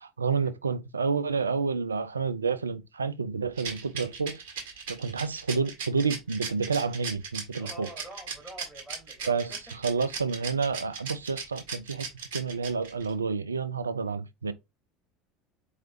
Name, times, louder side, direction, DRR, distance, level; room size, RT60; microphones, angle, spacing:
voice 1, 0.2-4.4 4.9-7.9 9.3-9.5 9.8-12.1 12.3-14.5, right 5 dB, 80° right, 0.4 m, -29 dB
Rattle, 3.6-13.1, right 5 dB, 60° right, 1.6 m, -37 dB
voice 2, 7.5-9.6 10.4-10.5 14.1-14.2, right 1 dB, 5° right, 3.0 m, -47 dB
4.6 x 3.2 x 2.6 m
figure-of-eight pair, 70°, 0 cm